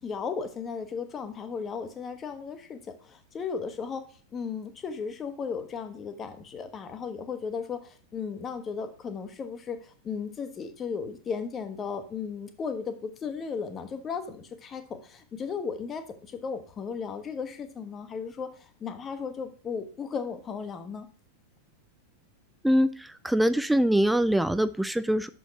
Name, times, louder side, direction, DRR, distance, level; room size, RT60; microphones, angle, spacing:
voice 1, 0.0-4.0 4.3-21.1, left 6 dB, 25° left, 9 dB, 1.0 m, -35 dB
voice 2, 22.6-25.3, equal, 5° right, 12 dB, 0.4 m, -23 dB
6.4 x 4.8 x 6.0 m, 0.42 s
figure-of-eight pair, 90°, 0 cm